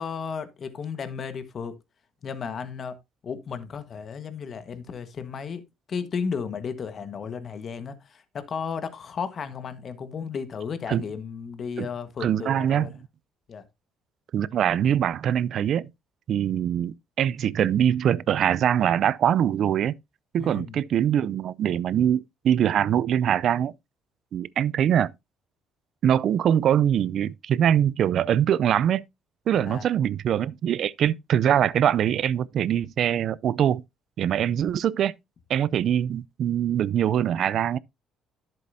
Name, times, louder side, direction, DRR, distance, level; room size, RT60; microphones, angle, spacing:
voice 1, 0.0-1.8 2.2-3.0 3.2-5.6 5.9-12.9 13.5-13.6 20.4-20.8 29.5-29.9, left 6 dB, 50° left, 1.4 m, -34 dB
voice 2, 12.2-12.9 14.3-15.9 16.3-19.9 20.3-23.7 24.3-25.1 26.0-29.0 29.5-33.8 34.2-35.1 35.5-37.8, right 9 dB, 60° right, 0.4 m, -23 dB
11.0 x 7.7 x 2.7 m
cardioid pair, 85°, 0 cm